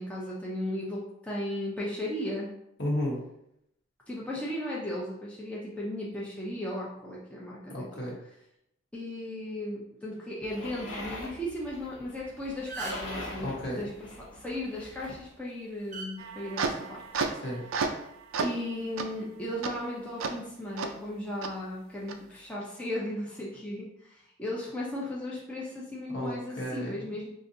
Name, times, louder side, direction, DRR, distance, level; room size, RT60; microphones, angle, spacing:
voice 1, 0.0-2.5 4.1-7.9 8.9-13.5 13.8-17.0 18.4-27.3, left 1 dB, 5° left, -6 dB, 0.6 m, -36 dB
voice 2, 2.8-3.2 7.7-8.2 13.4-13.8 17.4-17.6 26.1-27.1, left 1 dB, 60° left, -3 dB, 1.1 m, -33 dB
sound 1, 10.4-15.2, left 1 dB, 85° left, 0.9 m, -43 dB
sound 2, 12.1-12.3 12.5-13.2 14.8-15.1 15.9-16.1 17.1-17.4, right 4 dB, 35° right, 0.7 m, -39 dB
sound 3, 16.2-18.1 18.3-18.6 19.0-19.1 19.6-19.7 20.2-20.3 20.8-20.9 21.4-21.5 22.1-22.2, right 4 dB, 85° right, 0.4 m, -32 dB
5.1 x 2.5 x 2.6 m, 0.78 s
head